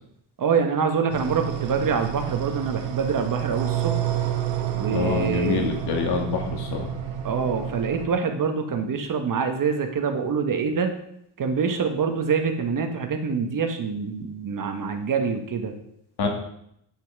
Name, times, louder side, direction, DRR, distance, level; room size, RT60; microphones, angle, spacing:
voice 1, 0.4-3.9 4.7-5.7 7.2-10.9 11.4-15.7, right 5 dB, 45° right, 5 dB, 1.5 m, -25 dB
sound 1, 1.1-8.1, right 11 dB, 75° right, 1.6 m, -29 dB
voice 2, 4.9-6.9 16.2-16.3, left 5 dB, 60° left, 2 dB, 2.5 m, -26 dB
9.0 x 6.2 x 6.0 m, 0.73 s
cardioid pair, 120°, 45 cm